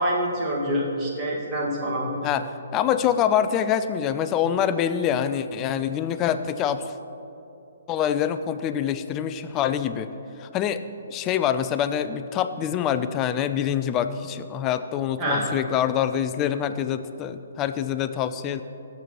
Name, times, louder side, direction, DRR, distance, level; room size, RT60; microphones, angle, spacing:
voice 1, 0.0-2.1 15.2-15.5, equal, 25° right, -4 dB, 1.8 m, -26 dB
voice 2, 2.2-6.8 7.9-10.1 10.4-10.8 11.1-18.6, left 9 dB, 25° left, 11 dB, 0.4 m, -25 dB
15.0 x 6.8 x 3.0 m, 2.9 s
figure-of-eight pair, 135°, 0 cm